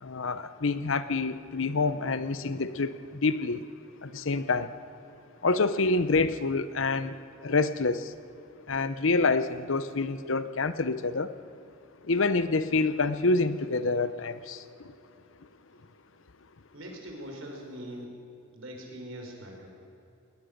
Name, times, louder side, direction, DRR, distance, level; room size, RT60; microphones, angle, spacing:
voice 1, 0.0-3.6 4.0-4.7 5.4-8.1 8.7-11.3 12.0-14.6, left 3 dB, 65° left, 13 dB, 0.9 m, -27 dB
voice 2, 16.7-18.2 18.5-19.7, equal, 70° right, 1 dB, 4.8 m, -42 dB
20.0 x 20.0 x 6.6 m, 2.8 s
head